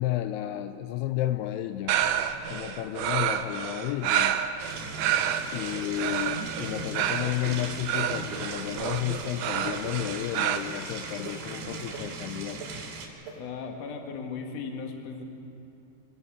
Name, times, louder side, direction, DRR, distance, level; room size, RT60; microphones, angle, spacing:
voice 1, 0.0-2.0 2.5-4.4 5.5-12.6, left 14 dB, 80° left, 9 dB, 2.6 m, -32 dB
sound 1, 1.9-10.6, right 10 dB, 85° right, 2.9 m, -29 dB
sound 2, 4.6-13.1, right 3 dB, 70° right, 4.0 m, -39 dB
sound 3, 6.3-6.7 7.4-7.6 8.3-8.4 9.1-9.2 9.8-9.9 10.5-10.6 11.2-11.3 11.9-12.0 12.6-12.7 13.3-13.4, right 5 dB, 45° right, 3.4 m, -40 dB
voice 2, 13.4-15.2, left 5 dB, 50° left, 3 dB, 2.4 m, -37 dB
25.0 x 12.5 x 8.6 m, 2.8 s
omnidirectional pair, 4.7 m